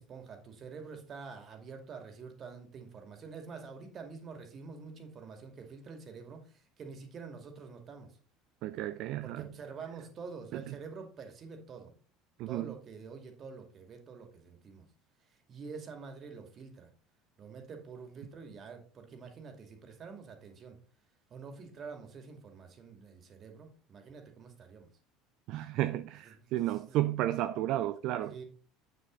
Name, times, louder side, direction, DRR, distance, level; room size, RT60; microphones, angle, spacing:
voice 1, 0.0-8.1 9.2-11.9 12.5-14.9 15.5-16.9 17.4-20.8 21.3-24.9 26.4-27.0 28.3-28.4, right 5 dB, 40° right, 2.4 m, -47 dB
voice 2, 8.6-9.5 10.5-10.8 12.4-12.7 25.5-28.3, right 14 dB, 55° right, 0.5 m, -33 dB
9.2 x 6.4 x 3.9 m
figure-of-eight pair, 65°, 0 cm